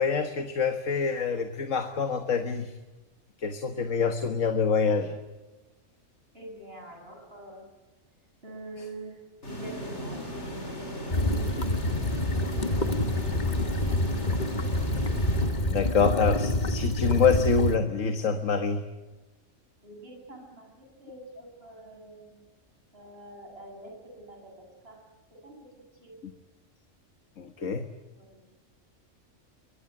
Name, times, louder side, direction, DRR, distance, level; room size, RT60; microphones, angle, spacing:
voice 1, 0.0-2.7 3.4-5.2 15.6-18.8 27.4-27.9, left 5 dB, 85° left, 7 dB, 1.8 m, -26 dB
voice 2, 6.3-7.7 8.4-13.1 13.6-13.8 19.8-22.4 22.9-25.0 25.3-25.7 25.9-26.2 28.2-28.5, right 1 dB, 50° right, 3 dB, 8.4 m, -45 dB
sound 1, 9.4-16.2, equal, 60° left, 4.9 m, -37 dB
sound 2, 11.1-17.8, left 1 dB, 35° left, 1.7 m, -27 dB
23.5 x 22.5 x 9.8 m, 1.1 s
omnidirectional pair, 1.3 m